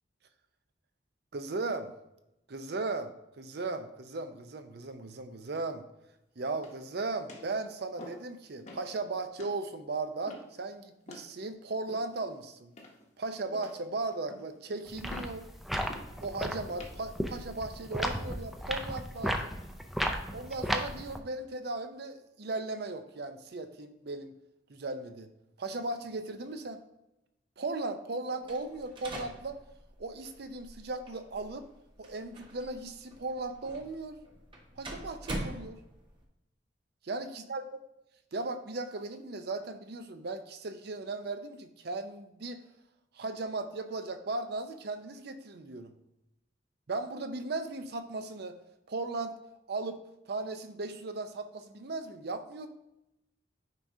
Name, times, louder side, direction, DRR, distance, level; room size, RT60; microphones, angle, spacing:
voice 1, 1.3-1.9 2.5-5.9 6.4-12.7 13.2-15.5 16.2-19.5 20.3-24.3 24.7-25.3 25.6-26.8 27.6-29.6 30.0-31.7 32.0-34.2 34.8-35.8 37.0-37.6 38.3-42.6 43.1-46.0 46.9-48.6 48.9-49.3 49.7-52.7, right 3 dB, 60° right, 9 dB, 0.6 m, -37 dB
sound 1, 6.5-6.9 7.3-7.5 8.0-8.3 8.7-8.9 9.4-9.6 10.3-10.6 11.1-11.3 11.9-12.3 12.8-13.1 13.5-13.9 14.3-14.6 15.1-15.4 15.9-16.1 16.7-17.0 17.6-17.9, left 1 dB, 40° left, 0.9 m, -48 dB
sound 2, 14.9-21.2, equal, ahead, 0.4 m, -35 dB
sound 3, 28.4-36.2, right 1 dB, 25° right, 1.0 m, -44 dB
9.2 x 4.8 x 2.7 m, 0.89 s
head